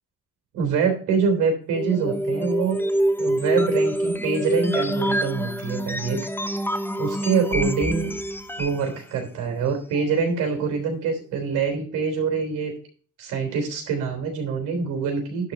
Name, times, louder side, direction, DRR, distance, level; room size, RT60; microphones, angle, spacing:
voice 1, 0.5-2.8 3.2-6.2 7.0-8.1 8.6-12.7 13.2-15.5, right 5 dB, 90° right, 3 dB, 3.6 m, -25 dB
sound 1, 1.7-8.9, right 1 dB, 5° left, 1.0 m, -26 dB
11.5 x 4.1 x 6.1 m, 0.42 s
cardioid pair, 90°, 30 cm